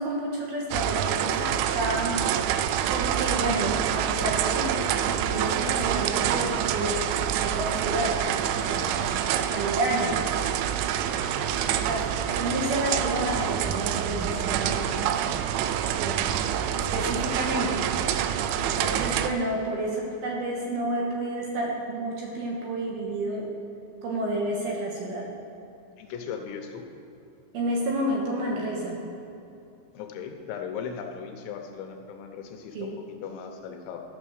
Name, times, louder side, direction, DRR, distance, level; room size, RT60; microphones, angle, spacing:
voice 1, 0.0-2.2 2.9-7.0 7.3-8.2 8.6-10.2 11.8-12.0 12.3-14.9 16.0-16.4 16.8-17.9 18.5-23.5 24.0-25.3 27.5-29.0 32.8-32.9, right 1 dB, 65° right, -2 dB, 2.8 m, -30 dB
sound 1, 0.7-19.3, right 10 dB, 85° right, 2.8 m, -27 dB
voice 2, 11.1-11.5 12.3-12.4 26.0-26.8 29.9-32.9 33.2-34.0, left 7 dB, 80° left, 4 dB, 3.0 m, -38 dB
12.5 x 7.3 x 6.4 m, 2.8 s
omnidirectional pair, 5.4 m